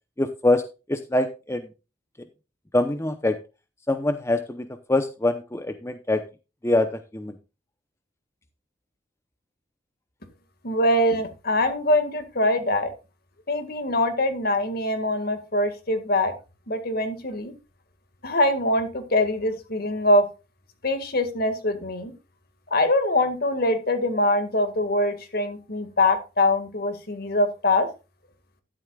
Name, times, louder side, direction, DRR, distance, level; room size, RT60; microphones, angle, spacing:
voice 1, 0.2-0.6 0.9-1.7 2.7-3.4 3.9-6.2 6.6-6.9 7.1-7.3, left 2 dB, 15° left, 8 dB, 0.7 m, -24 dB
voice 2, 10.6-12.9 13.5-16.3 16.7-17.5 18.2-20.3 20.8-22.1 22.7-27.9, left 1 dB, 55° left, 8 dB, 1.9 m, -23 dB
12.5 x 10.5 x 2.3 m, 0.29 s
head